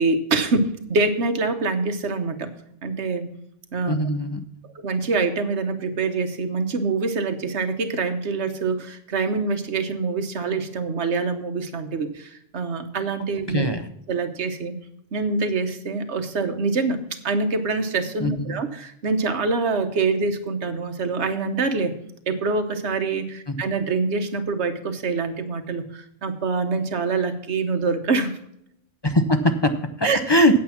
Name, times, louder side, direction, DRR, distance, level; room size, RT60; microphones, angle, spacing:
voice 1, 0.0-2.5 2.8-3.3 3.7-4.0 4.8-13.7 14.1-14.8 15.1-21.9 22.3-28.4 30.0-30.2, right 4 dB, 65° right, 8 dB, 1.3 m, -25 dB
voice 2, 3.9-4.4 13.5-13.9 18.2-18.6 23.5-23.6 29.0-30.6, equal, 30° left, 7 dB, 0.6 m, -21 dB
8.6 x 8.5 x 5.8 m, 0.74 s
omnidirectional pair, 1.2 m